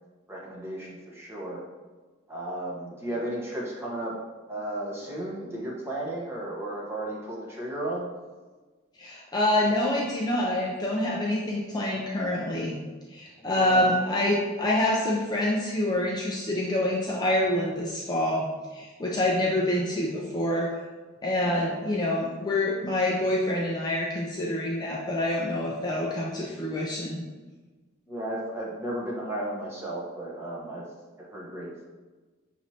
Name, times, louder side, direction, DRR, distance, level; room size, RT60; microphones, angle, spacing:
voice 1, 0.3-1.6 2.3-4.1 4.5-8.1 13.4-14.0 21.4-21.7 28.1-30.8 31.2-31.9, right 1 dB, 10° right, -5 dB, 1.0 m, -34 dB
voice 2, 9.0-12.8 13.1-20.7 21.2-27.2, left 1 dB, 20° left, -3 dB, 0.5 m, -26 dB
6.1 x 3.1 x 2.8 m, 1.3 s
head